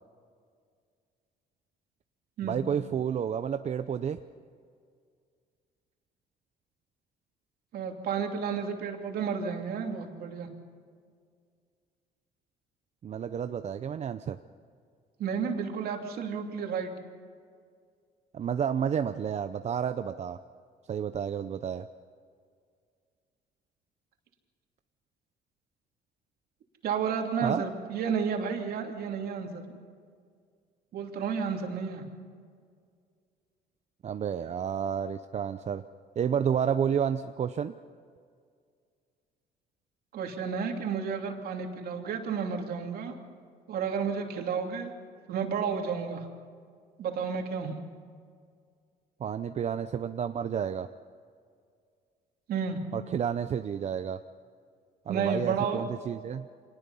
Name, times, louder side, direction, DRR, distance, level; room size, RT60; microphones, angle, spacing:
voice 1, 2.4-4.2 13.0-14.4 18.3-20.4 20.9-21.9 27.4-27.6 34.0-35.8 36.2-37.7 49.2-50.9 52.9-54.2 55.1-56.5, right 8 dB, 40° right, 9 dB, 0.6 m, -30 dB
voice 2, 7.7-10.5 15.2-16.9 26.8-29.6 30.9-32.0 40.1-43.1 43.7-44.9 45.3-46.3 47.0-47.8 52.5-52.8 55.1-55.9, right 6 dB, 65° right, 3 dB, 2.9 m, -31 dB
25.5 x 19.5 x 5.6 m, 2.1 s
cardioid pair, 110°, 17 cm